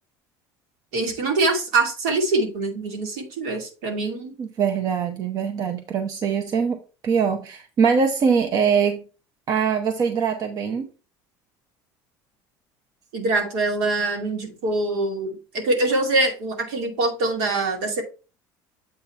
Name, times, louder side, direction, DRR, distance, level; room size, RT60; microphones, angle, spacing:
voice 1, 0.9-4.3 13.1-18.0, right 2 dB, 85° right, 2 dB, 2.3 m, -24 dB
voice 2, 4.4-6.8 7.0-9.0 9.5-10.9, right 6 dB, 40° right, 5 dB, 0.8 m, -22 dB
7.7 x 2.8 x 5.6 m, 0.33 s
cardioid pair, 125°, 9 cm